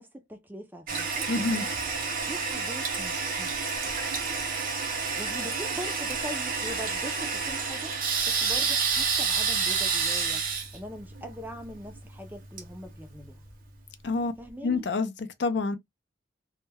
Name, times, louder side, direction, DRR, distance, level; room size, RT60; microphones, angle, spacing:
voice 1, 0.0-1.7 2.3-4.0 5.2-8.0 8.3-10.5 10.7-13.4 14.4-14.8, equal, 10° right, 0.4 m, -42 dB
Toilet flush, 0.9-13.5, right 5 dB, 45° right, 0.6 m, -30 dB
voice 2, 1.3-1.6 14.0-14.3 14.6-15.8, left 3 dB, 60° left, 0.4 m, -27 dB
2.1 x 2.1 x 3.3 m
head